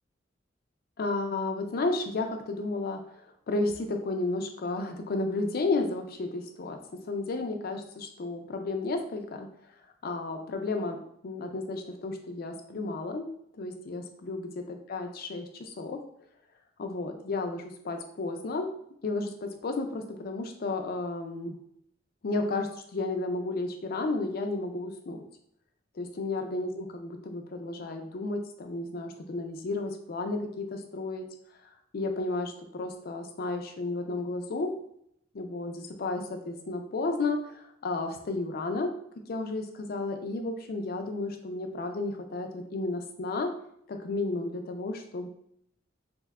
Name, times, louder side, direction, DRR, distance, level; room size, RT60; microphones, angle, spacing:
voice 1, 1.0-6.8 7.0-9.5 10.0-13.3 13.6-16.0 16.8-18.7 19.0-21.5 22.2-25.2 26.0-31.3 31.9-34.7 35.3-38.9 39.3-43.5 43.9-45.3, left 3 dB, 55° left, 5 dB, 0.4 m, -32 dB
2.7 x 2.2 x 3.5 m, 0.71 s
head